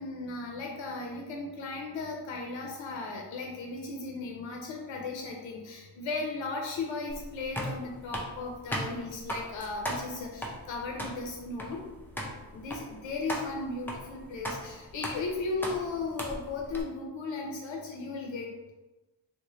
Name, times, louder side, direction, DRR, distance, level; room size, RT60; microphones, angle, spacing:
voice 1, 0.0-11.9 12.5-18.7, left 3 dB, 75° left, 0 dB, 0.6 m, -36 dB
sound 1, 7.1-16.8, equal, 5° left, 0.4 m, -38 dB
3.0 x 2.1 x 3.8 m, 1.1 s
wide cardioid pair, 125°, 46 cm